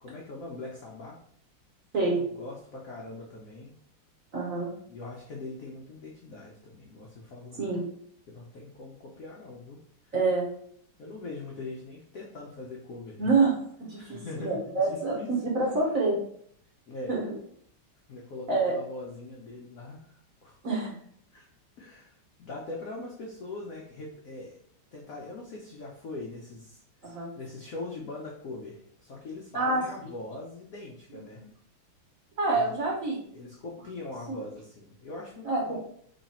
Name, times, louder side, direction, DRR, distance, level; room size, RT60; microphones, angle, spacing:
voice 1, 0.0-1.2 2.0-3.7 4.9-7.6 8.3-9.8 11.0-13.3 14.0-15.4 16.9-17.2 18.1-20.0 20.4-20.6 21.3-21.5 21.8-22.1 22.4-24.6 24.9-31.4 32.5-32.8 33.3-35.8, left 2 dB, 85° left, -2 dB, 0.7 m, -42 dB
voice 2, 4.3-4.7 7.6-7.9 10.1-10.5 13.2-13.5 13.8-16.2 17.1-17.4 18.5-18.8 20.6-20.9 27.0-27.3 29.5-30.1 32.4-33.2 34.3-34.4 35.4-35.8, right 3 dB, 55° right, -3 dB, 0.9 m, -27 dB
3.2 x 3.1 x 4.1 m, 0.65 s
omnidirectional pair, 2.3 m